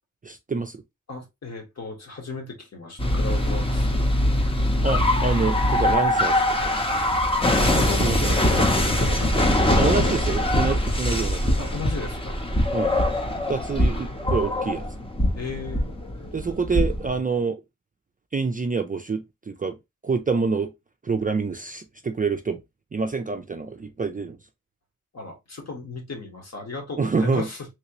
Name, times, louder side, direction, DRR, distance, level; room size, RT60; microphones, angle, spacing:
voice 1, 0.2-0.8 4.8-6.8 8.0-8.3 9.7-11.5 12.7-13.0 13.5-14.9 16.3-17.6 18.3-19.8 20.0-20.7 21.0-22.6 22.9-24.4 27.0-27.5, right 4 dB, 25° right, 0.3 m, -27 dB
voice 2, 1.1-4.1 7.5-10.1 11.6-12.4 15.3-15.9 25.1-27.6, left 3 dB, 55° left, 1.4 m, -35 dB
sound 1, 3.0-17.2, left 1 dB, 15° left, 0.7 m, -22 dB
3.3 x 2.8 x 2.8 m
wide cardioid pair, 105°, 32 cm